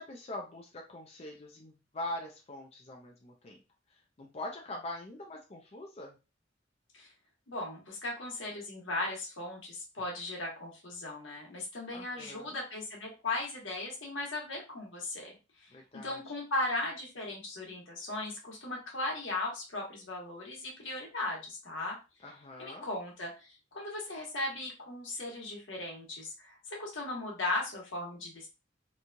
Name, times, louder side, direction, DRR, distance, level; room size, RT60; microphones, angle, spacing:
voice 1, 0.0-3.6 3.9-6.1 11.9-12.6 15.7-16.2 22.2-22.9, left 1 dB, 35° left, 1 dB, 0.5 m, -43 dB
voice 2, 7.5-15.7 16.0-22.0 22.6-28.5, left 2 dB, 80° left, -1 dB, 1.2 m, -37 dB
3.0 x 2.3 x 2.6 m, 0.29 s
head